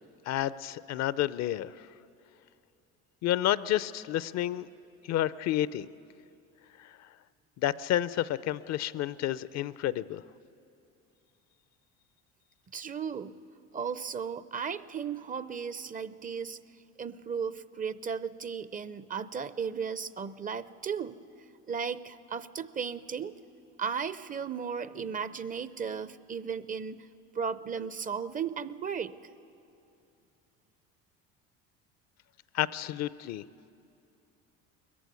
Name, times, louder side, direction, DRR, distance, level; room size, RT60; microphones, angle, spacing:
voice 1, 0.3-1.7 3.2-4.7 5.1-5.9 6.8-6.9 7.6-10.2 32.5-33.4, left 13 dB, 55° left, 17 dB, 0.6 m, -30 dB
voice 2, 12.7-13.4 13.7-16.6 17.0-21.2 21.7-23.3 23.8-27.1 27.3-29.2, right 6 dB, 25° right, 15 dB, 0.5 m, -35 dB
20.5 x 15.0 x 9.6 m, 2.6 s
supercardioid pair, 90°, 32 cm